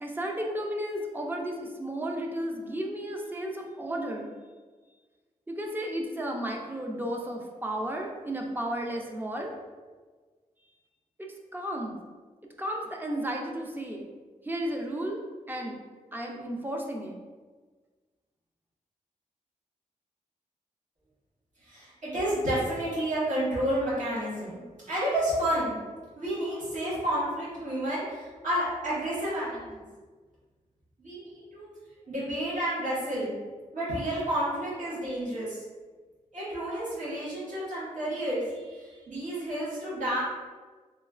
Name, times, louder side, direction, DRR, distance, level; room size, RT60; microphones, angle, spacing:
voice 1, 0.0-4.3 5.5-9.5 11.2-12.0 12.6-14.1 14.4-15.8 16.1-17.2, right 1 dB, 15° right, 0 dB, 0.4 m, -33 dB
voice 2, 21.6-25.7 26.1-29.8 31.0-31.7 32.1-33.3 33.7-35.6 36.3-40.2, right 1 dB, 70° right, -10 dB, 1.4 m, -30 dB
3.1 x 2.9 x 2.4 m, 1.4 s
wide cardioid pair, 135°, 13 cm